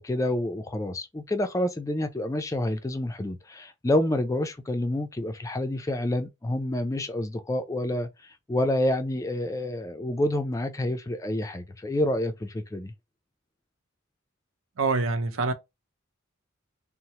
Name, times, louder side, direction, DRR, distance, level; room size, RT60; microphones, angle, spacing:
voice 1, 0.0-12.9, left 1 dB, 15° left, 0.3 m, -28 dB
voice 2, 14.8-15.5, right 3 dB, 70° right, 0.5 m, -25 dB
2.9 x 2.0 x 2.8 m
head